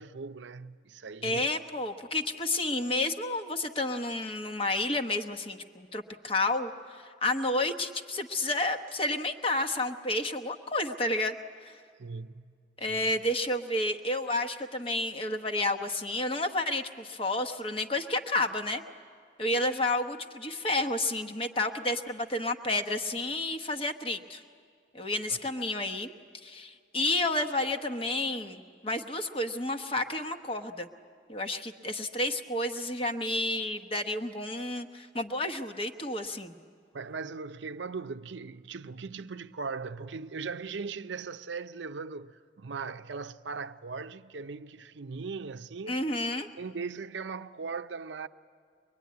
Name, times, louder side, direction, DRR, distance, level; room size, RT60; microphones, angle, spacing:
voice 1, 0.0-1.5 12.0-12.4 12.9-13.0 25.3-25.4 36.9-46.0 46.6-48.3, right 4 dB, 70° right, 0.6 m, -39 dB
voice 2, 1.2-11.3 11.6-11.8 12.8-18.8 19.4-24.4 24.9-26.1 26.4-30.9 31.3-36.6 45.9-46.5, left 2 dB, 30° left, 1.0 m, -31 dB
23.5 x 22.0 x 9.5 m
head